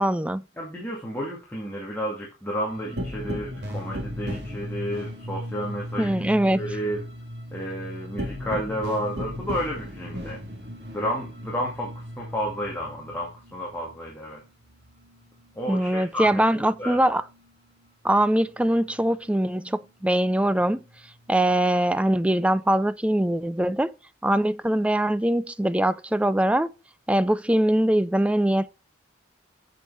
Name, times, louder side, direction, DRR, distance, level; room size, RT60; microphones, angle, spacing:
voice 1, 0.0-0.4 6.0-6.6 15.7-17.2 18.0-20.8 21.3-23.9 24.2-26.7 27.1-28.7, right 1 dB, 5° right, 0.3 m, -22 dB
voice 2, 0.6-6.2 6.5-7.0 7.5-10.4 10.9-14.4 15.6-17.0, equal, 10° left, 2.0 m, -31 dB
sound 1, 2.7-15.7 16.0-17.9 18.2-19.9 20.3-22.1, equal, 60° right, 2.3 m, -37 dB
8.1 x 6.5 x 4.2 m
head